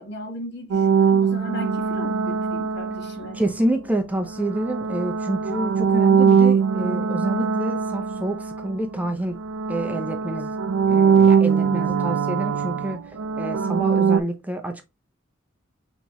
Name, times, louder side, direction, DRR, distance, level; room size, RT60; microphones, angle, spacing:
voice 1, 0.0-3.4 11.6-12.2, equal, 55° left, 1.6 m, -37 dB
sound 1, 0.7-3.6 4.3-9.1 9.4-14.2, right 6 dB, 85° right, 0.4 m, -21 dB
voice 2, 3.3-9.4 9.7-10.5 10.9-14.8, right 1 dB, 10° right, 0.5 m, -28 dB
5.8 x 3.0 x 3.0 m
head